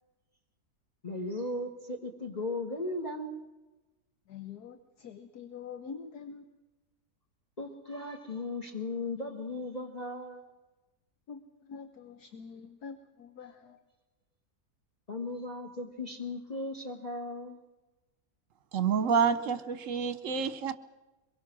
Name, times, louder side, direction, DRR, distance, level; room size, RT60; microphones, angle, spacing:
voice 1, 1.0-3.4 7.6-10.4 15.1-17.6, left 2 dB, 25° left, 4 dB, 1.8 m, -37 dB
voice 2, 4.3-6.6 11.3-13.8, left 6 dB, 70° left, 8 dB, 1.7 m, -45 dB
voice 3, 18.7-20.7, right 6 dB, 55° right, 13 dB, 1.3 m, -28 dB
24.0 x 22.0 x 6.2 m, 1.1 s
omnidirectional pair, 1.7 m